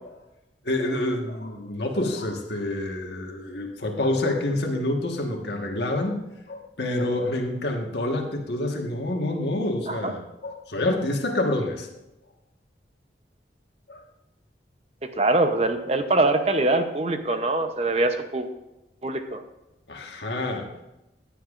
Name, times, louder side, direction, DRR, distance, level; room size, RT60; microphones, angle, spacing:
voice 1, 0.6-6.2 6.5-11.9 13.9-14.0 19.9-20.7, left 1 dB, 80° left, 2 dB, 1.6 m, -27 dB
voice 2, 15.2-18.5 19.0-19.4, right 2 dB, 35° right, 7 dB, 0.8 m, -23 dB
15.0 x 10.5 x 2.5 m, 0.95 s
head